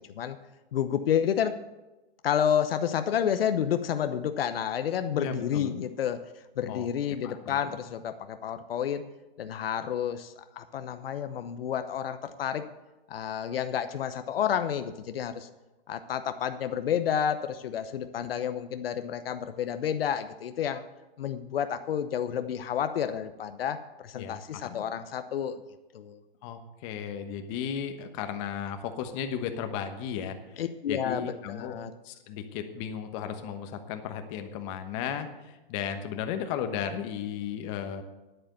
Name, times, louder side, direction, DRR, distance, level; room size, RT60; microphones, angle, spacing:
voice 1, 0.7-1.6 2.2-9.0 9.4-12.6 13.1-15.5 15.9-20.8 21.2-25.6 25.9-26.2 30.6-31.9, left 9 dB, 75° left, 10 dB, 0.9 m, -30 dB
voice 2, 5.1-5.7 6.7-6.9 7.2-7.8 24.1-24.8 26.4-30.6 30.9-31.8 32.0-38.0, left 8 dB, 35° left, 7 dB, 1.2 m, -35 dB
10.0 x 8.8 x 6.7 m, 1.1 s
hypercardioid pair, 150°, 29 cm